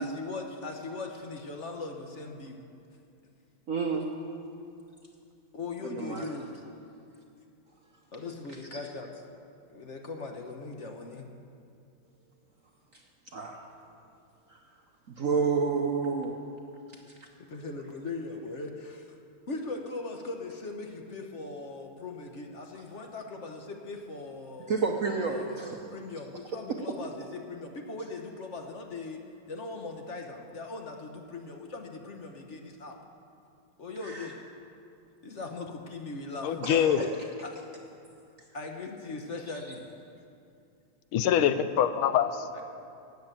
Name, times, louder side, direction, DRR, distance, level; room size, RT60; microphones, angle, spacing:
voice 1, 0.0-2.6 5.5-6.5 8.1-9.2 9.7-11.3 17.4-19.1 19.5-25.6 25.9-33.0 33.8-34.3 35.2-36.6 37.4-37.5 38.5-39.8, left 3 dB, 50° left, 3 dB, 0.9 m, -39 dB
voice 2, 3.7-4.1 5.8-6.3 8.7-8.8 12.9-13.0 13.3-13.6 14.5-14.6 15.1-16.3 24.7-26.0 26.7-27.0 34.0-34.3 36.6-37.1, right 5 dB, 60° right, 2 dB, 0.9 m, -30 dB
voice 3, 36.4-37.1 41.1-42.5, left 9 dB, 85° left, 12 dB, 1.5 m, -24 dB
13.0 x 8.3 x 8.9 m, 2.5 s
omnidirectional pair, 2.3 m